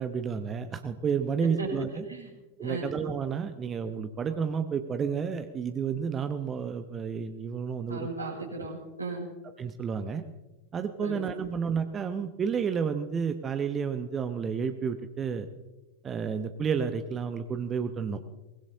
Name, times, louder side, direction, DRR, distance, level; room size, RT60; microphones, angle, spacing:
voice 1, 0.0-2.0 2.6-8.1 8.6-8.7 9.6-10.2 10.7-15.5 16.0-18.4, right 6 dB, 25° right, 9 dB, 1.0 m, -31 dB
voice 2, 7.9-9.3 11.0-11.2, right 3 dB, 85° right, -8 dB, 5.0 m, -36 dB
23.0 x 21.0 x 2.8 m, 1.1 s
figure-of-eight pair, 90°, 0 cm